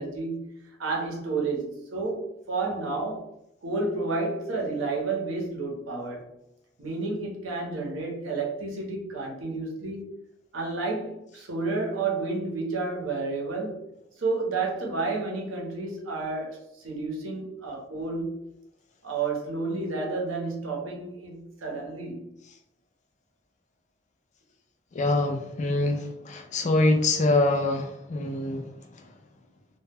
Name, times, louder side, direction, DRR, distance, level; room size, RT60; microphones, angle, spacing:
voice 1, 0.0-3.3 3.6-6.3 6.8-10.1 10.5-13.8 14.2-18.4 19.0-22.3, right 3 dB, 80° right, 0.8 m, -31 dB
voice 2, 24.9-29.0, left 2 dB, 35° left, 0.3 m, -25 dB
2.2 x 2.0 x 3.3 m
head